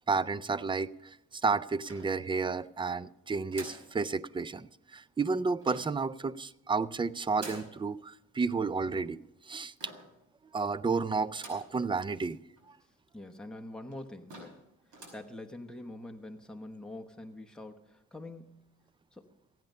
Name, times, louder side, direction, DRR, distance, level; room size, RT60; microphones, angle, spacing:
voice 1, 0.1-9.2 9.5-9.7 10.5-12.4 12.7-12.8, right 4 dB, 15° right, 18 dB, 0.4 m, -31 dB
sound 1, 1.8-2.6 3.5-3.9 5.6-6.0 7.4-7.8 9.8-10.2 11.3-11.8 12.2-12.3 12.6-12.7 13.4-13.5 13.9-14.0 14.3-14.6 14.9-15.3, right 2 dB, 75° right, 5.3 m, -47 dB
voice 2, 13.1-14.7 15.1-18.6 19.1-19.3, left 1 dB, ahead, 4 dB, 1.1 m, -45 dB
15.0 x 9.3 x 5.4 m, 0.86 s
cardioid pair, 90°, 30 cm